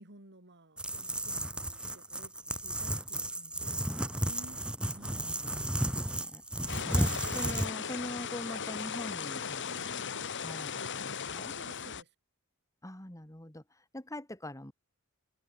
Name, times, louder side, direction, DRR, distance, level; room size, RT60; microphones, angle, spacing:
voice 1, 0.0-4.6 4.9-5.4 9.7-9.9 11.5-12.1, right 1 dB, 50° right, 5.8 m, -54 dB
sound 1, 0.8-7.7, right 1 dB, 5° right, 0.9 m, -33 dB
voice 2, 5.2-10.1 10.4-11.6 12.8-14.7, left 1 dB, 15° left, 2.8 m, -44 dB
sound 2, 6.7-12.0, left 6 dB, 55° left, 2.0 m, -37 dB
head